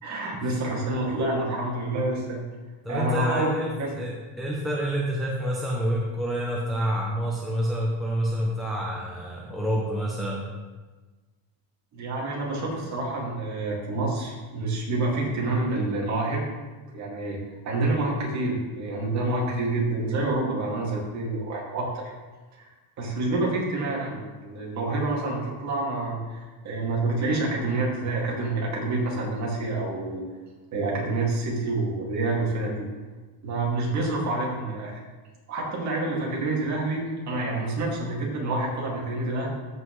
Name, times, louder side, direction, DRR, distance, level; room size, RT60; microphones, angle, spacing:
voice 1, 0.0-2.4 2.9-3.5 3.8-3.9 11.9-16.4 16.9-17.4 17.6-22.1 22.6-22.7 23.0-30.2 30.7-32.9 33.4-35.0 35.5-39.5, right 2 dB, 35° right, -3 dB, 2.2 m, -28 dB
voice 2, 2.8-10.5, equal, ahead, -4 dB, 0.5 m, -28 dB
13.5 x 5.5 x 3.1 m, 1.3 s
cardioid pair, 170°, 50 cm